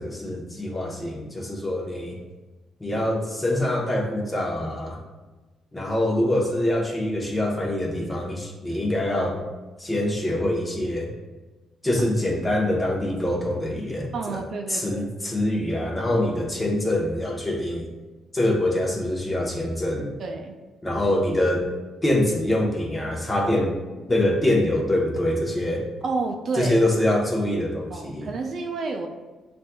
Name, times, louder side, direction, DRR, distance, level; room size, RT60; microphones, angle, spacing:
voice 1, 0.0-2.2 2.8-5.0 5.7-9.4 9.8-11.1 11.8-14.4 14.7-17.9 18.3-20.1 20.8-21.7 22.0-23.8 24.1-25.8 26.6-28.3, left 1 dB, 15° left, -1 dB, 0.9 m, -24 dB
voice 2, 14.1-15.1 20.2-20.6 26.0-26.8 27.9-29.1, right 3 dB, 60° right, 3 dB, 0.5 m, -30 dB
7.0 x 2.5 x 2.3 m, 1.2 s
cardioid pair, 90°, 0 cm